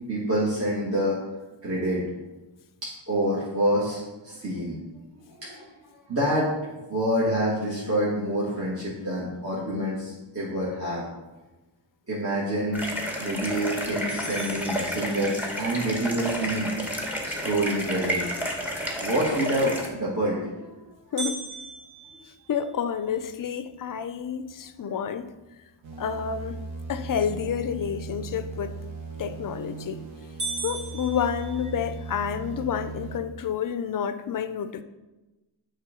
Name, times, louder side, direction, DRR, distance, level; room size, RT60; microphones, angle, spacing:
voice 1, 0.1-1.2 1.6-2.0 2.8-4.8 5.4-5.7 6.1-6.5 6.9-11.0 12.1-12.8 13.2-16.7 17.2-18.4 19.0-20.7, right 1 dB, 30° right, 1.4 m, -27 dB
sound 1, 12.7-19.9, equal, 5° right, 0.9 m, -31 dB
sound 2, 14.1-15.7 21.2-23.3 23.8-23.9 24.4-24.5 25.2-25.5 29.1-29.5 29.9-30.0 30.4-32.1, right 3 dB, 65° right, 2.2 m, -38 dB
voice 2, 22.5-25.3 26.0-28.8 29.2-30.0 30.6-34.8, left 8 dB, 50° left, 0.4 m, -29 dB
sound 3, 25.8-33.2, right 4 dB, 85° right, 1.1 m, -38 dB
7.5 x 3.1 x 4.9 m
wide cardioid pair, 125°, 46 cm